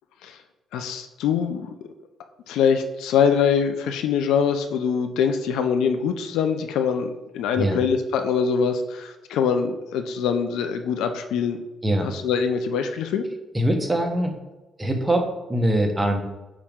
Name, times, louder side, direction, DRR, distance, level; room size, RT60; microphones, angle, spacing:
voice 1, 0.7-1.7 2.5-11.6 12.0-13.2, left 6 dB, 90° left, 8 dB, 0.5 m, -23 dB
voice 2, 13.5-14.3 14.8-16.2, right 1 dB, 15° right, 3 dB, 1.1 m, -22 dB
8.6 x 3.0 x 3.7 m, 1.1 s
cardioid pair, 90°, 0 cm